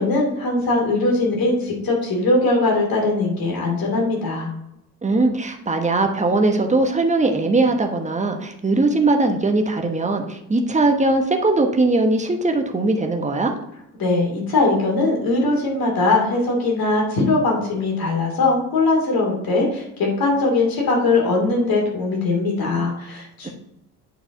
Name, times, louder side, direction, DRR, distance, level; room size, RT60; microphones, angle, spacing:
voice 1, 0.0-4.5 14.0-23.5, left 2 dB, 45° left, -1 dB, 2.9 m, -20 dB
voice 2, 5.0-13.5 23.4-23.5, right 2 dB, 15° right, 4 dB, 1.2 m, -20 dB
8.9 x 4.8 x 3.9 m, 0.84 s
figure-of-eight pair, 55°, 47 cm